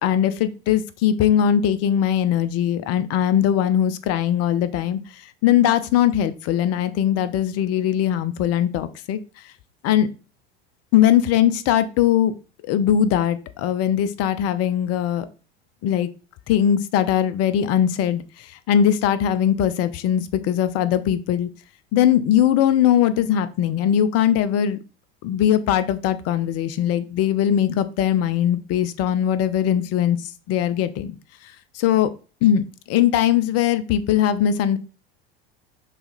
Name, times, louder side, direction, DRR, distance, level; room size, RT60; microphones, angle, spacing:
voice 1, 0.0-9.2 9.8-10.1 10.9-12.3 12.6-15.3 15.8-16.1 16.5-21.5 21.9-24.8 25.2-31.1 31.7-32.1 32.4-34.8, left 10 dB, 50° left, 12 dB, 0.8 m, -20 dB
5.9 x 4.1 x 4.0 m, 0.34 s
hypercardioid pair, 85°, 32 cm